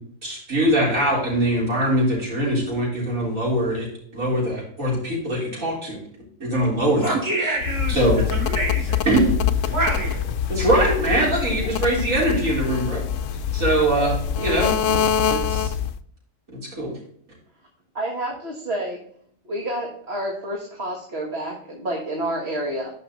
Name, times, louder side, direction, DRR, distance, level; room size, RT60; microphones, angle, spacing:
voice 1, 0.2-3.9 4.1-6.0 6.4-7.2 7.9-8.2 9.1-9.3 10.5-13.0 13.5-15.7 16.8-16.9, right 1 dB, 80° right, -5 dB, 4.5 m, -22 dB
voice 2, 7.0-8.0 8.3-9.0 9.7-10.3, right 2 dB, 15° right, -4 dB, 3.7 m, -26 dB
sound 1, 7.6-16.0, left 8 dB, 70° left, 0.9 m, -24 dB
voice 3, 13.9-14.4 17.9-19.0 19.4-22.9, right 1 dB, 50° right, -1 dB, 1.8 m, -29 dB
11.5 x 5.7 x 3.1 m, 0.63 s
omnidirectional pair, 1.4 m